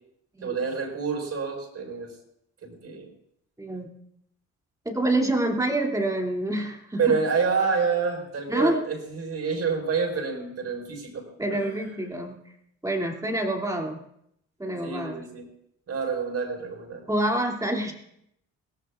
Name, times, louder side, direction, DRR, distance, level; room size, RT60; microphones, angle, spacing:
voice 1, 0.4-2.1 2.6-3.1 7.0-12.2 14.8-15.5 15.9-17.0, right 5 dB, 55° right, 2 dB, 5.2 m, -28 dB
voice 2, 3.6-3.9 4.8-7.2 8.5-8.8 11.4-12.4 12.8-14.0 14.6-15.2 17.1-17.9, right 1 dB, 10° right, 1 dB, 2.7 m, -27 dB
23.0 x 17.5 x 2.5 m, 0.75 s
cardioid pair, 90°, 30 cm